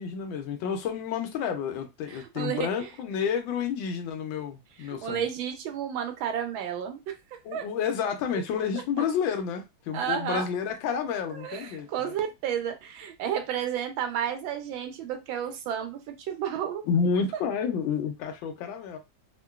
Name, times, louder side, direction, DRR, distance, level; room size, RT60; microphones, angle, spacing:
voice 1, 0.0-5.3 7.4-12.1 16.9-19.0, left 6 dB, 80° left, 1.3 m, -30 dB
voice 2, 2.1-2.9 4.8-7.6 9.9-10.5 11.3-16.8, right 9 dB, 80° right, 1.4 m, -32 dB
3.7 x 2.2 x 2.3 m
omnidirectional pair, 2.1 m